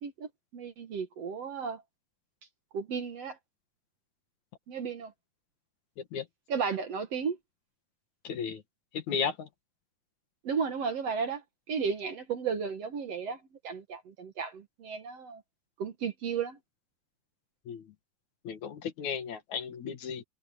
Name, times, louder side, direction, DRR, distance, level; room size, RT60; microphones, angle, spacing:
voice 1, 0.0-1.8 2.7-3.4 4.7-5.1 6.5-7.4 10.4-15.4 15.8-16.6, right 6 dB, 55° right, 2.2 m, -34 dB
voice 2, 8.2-8.6 8.9-9.5 17.7-17.9 18.4-20.2, left 6 dB, 60° left, 2.9 m, -34 dB
omnidirectional pair, 3.9 m